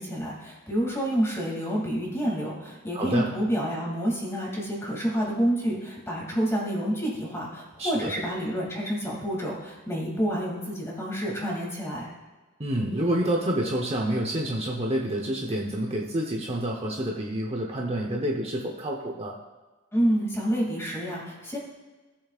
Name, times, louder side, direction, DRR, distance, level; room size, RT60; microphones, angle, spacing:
voice 1, 0.0-12.1 19.9-21.6, equal, 10° left, -3 dB, 2.6 m, -28 dB
voice 2, 2.9-3.3 7.8-8.1 12.6-19.4, right 1 dB, 30° right, 0 dB, 0.9 m, -28 dB
17.5 x 7.1 x 2.5 m, 1.3 s
head